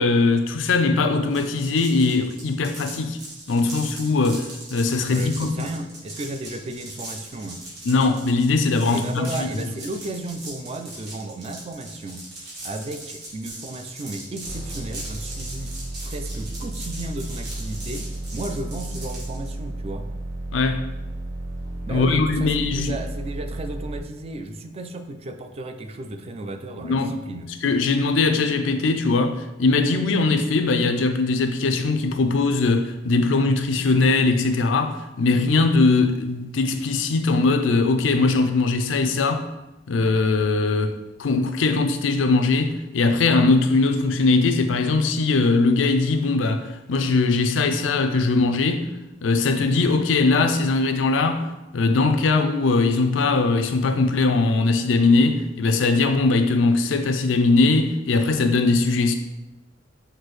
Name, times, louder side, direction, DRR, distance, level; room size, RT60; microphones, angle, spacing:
voice 1, 0.0-3.2 3.5-5.7 7.8-9.5 20.5-20.8 21.9-22.9 26.8-27.1 27.6-39.5 39.9-48.9 49.2-51.4 51.7-59.1, left 3 dB, 85° left, 0.4 m, -20 dB
sound 1, 1.3-19.5, right 1 dB, 60° right, 1.5 m, -39 dB
voice 2, 5.1-7.6 8.9-12.2 12.6-15.7 16.0-20.1 21.9-27.5, right 2 dB, 35° right, 0.3 m, -34 dB
sound 2, 14.4-24.0, right 1 dB, 85° right, 0.9 m, -33 dB
5.9 x 2.6 x 3.1 m
head